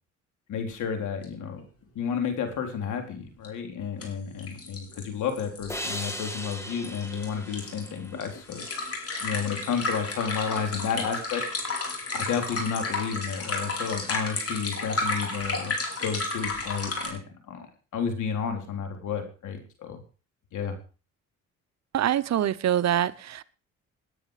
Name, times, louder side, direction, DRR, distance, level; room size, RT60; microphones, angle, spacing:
voice 1, 0.5-1.6 1.9-8.6 9.2-11.4 12.1-20.0 20.5-20.7, left 6 dB, 80° left, 5 dB, 4.1 m, -31 dB
sound 1, 1.2-1.3 1.6-1.7 3.4-3.5 4.0-4.1 4.4-17.1, left 3 dB, 50° left, 5.1 m, -32 dB
sound 2, 5.7-9.0, equal, 10° left, 2.5 m, -38 dB
voice 2, 21.9-23.4, right 11 dB, 60° right, 15 dB, 0.9 m, -25 dB
19.0 x 9.5 x 5.1 m, 0.37 s
cardioid pair, 90°, 30 cm